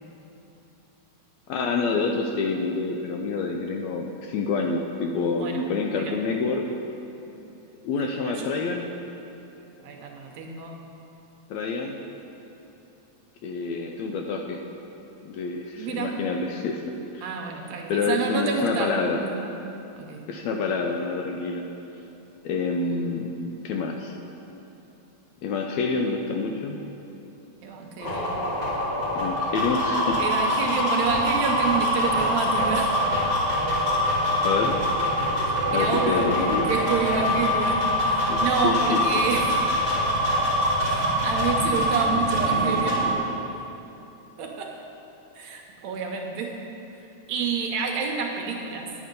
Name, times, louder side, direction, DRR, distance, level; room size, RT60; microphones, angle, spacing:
voice 1, 1.5-6.6 7.8-8.9 11.5-12.0 13.4-14.6 15.2-16.8 17.1-17.3 17.9-19.2 20.3-21.6 22.4-23.3 23.6-24.2 25.4-26.8 29.2-30.7 34.4-34.8 35.7-36.7 38.3-39.2, left 4 dB, 75° left, 2 dB, 1.7 m, -27 dB
voice 2, 8.0-8.5 9.8-10.8 15.8-16.2 17.2-19.4 19.9-20.3 27.6-28.4 30.2-33.0 35.5-39.6 40.9-43.1 44.4-44.8 45.4-46.6 47.0-48.9, right 5 dB, 75° right, 2 dB, 1.8 m, -29 dB
sound 1, 28.0-43.1, equal, 20° left, 1.3 m, -24 dB
10.5 x 8.0 x 5.2 m, 2.9 s
omnidirectional pair, 3.5 m